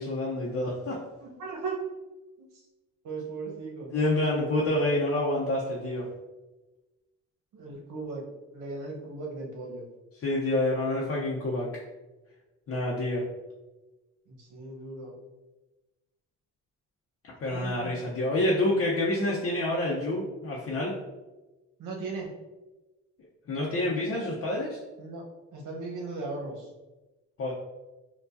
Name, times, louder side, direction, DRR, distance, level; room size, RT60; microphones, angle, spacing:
voice 1, 0.0-1.0 3.9-6.1 10.2-11.7 12.7-13.2 17.4-21.0 23.5-24.8 27.4-27.5, left 1 dB, 50° left, -4 dB, 0.7 m, -28 dB
voice 2, 1.2-1.8 2.4-2.5 3.0-4.0 7.5-8.3 8.5-9.9 14.3-15.1 17.4-18.0 21.8-22.3 25.0-26.7, right 3 dB, 85° right, -1 dB, 1.0 m, -37 dB
4.5 x 2.3 x 2.6 m, 1.1 s
cardioid pair, 90°, 30 cm